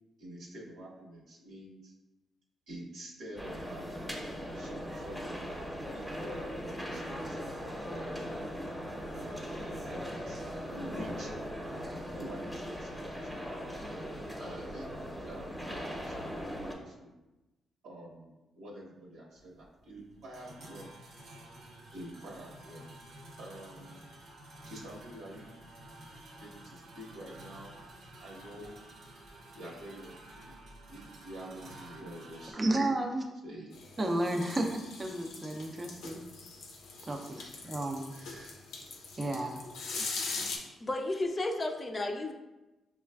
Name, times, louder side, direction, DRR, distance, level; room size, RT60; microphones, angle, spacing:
voice 1, 0.2-1.9 2.7-3.9 4.5-5.4 5.9-7.4 7.8-8.4 9.1-9.6 9.8-10.4 10.7-11.3 12.2-13.5 14.4-14.9 15.3-17.1 17.8-20.9 21.9-22.8 23.4-24.0 24.6-25.5 26.4-27.8 28.2-28.8 29.5-32.6 33.4-33.7 34.0-34.1 38.1-38.5, right 1 dB, 90° right, -4 dB, 1.1 m, -47 dB
sound 1, 3.4-16.7, equal, 5° left, 0.8 m, -39 dB
sound 2, 19.3-32.5, right 1 dB, 70° right, 0.8 m, -51 dB
voice 2, 32.5-33.2 34.0-36.2 37.1-38.1 39.2-39.6 40.0-40.1, right 1 dB, 30° right, 2 dB, 0.5 m, -32 dB
sound 3, 33.7-40.6, left 3 dB, 85° left, 0.6 m, -41 dB
voice 3, 40.8-42.3, left 2 dB, 30° left, 3 dB, 0.4 m, -33 dB
6.0 x 2.4 x 2.3 m, 1.1 s
cardioid pair, 85°, 0 cm